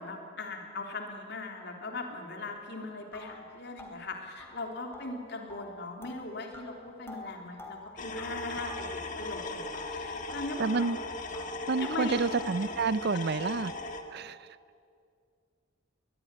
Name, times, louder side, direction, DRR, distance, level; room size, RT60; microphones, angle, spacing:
voice 1, 0.0-8.9 9.2-10.7 11.8-12.2 13.3-13.5, left 3 dB, 60° left, 2 dB, 3.6 m, -39 dB
sound 1, 2.6-2.7 3.1-9.4 9.7-11.0 11.3-12.7, left 2 dB, 15° left, 3.1 m, -48 dB
sound 2, 8.0-14.0, left 2 dB, 40° left, 1.9 m, -38 dB
voice 2, 10.6-11.0 11.7-13.7 14.1-14.4, right 4 dB, 55° right, 18 dB, 0.5 m, -29 dB
21.5 x 20.5 x 9.9 m, 2.3 s
head